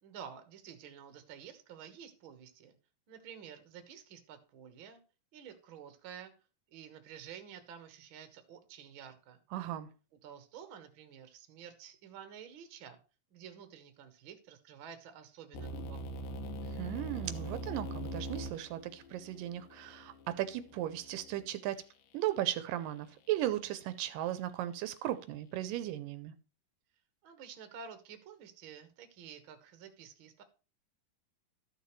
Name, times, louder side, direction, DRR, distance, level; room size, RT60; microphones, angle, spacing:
voice 1, 0.0-2.7 3.1-5.0 5.3-6.3 6.7-9.4 10.2-13.0 13.3-16.2 27.2-30.4, right 8 dB, 55° right, 1.4 m, -50 dB
voice 2, 9.5-9.9 16.7-21.8 22.1-26.3, right 13 dB, 80° right, 2.2 m, -36 dB
sound 1, 15.5-21.5, right 1 dB, 75° left, 2.7 m, -42 dB
13.0 x 6.6 x 3.1 m
omnidirectional pair, 4.0 m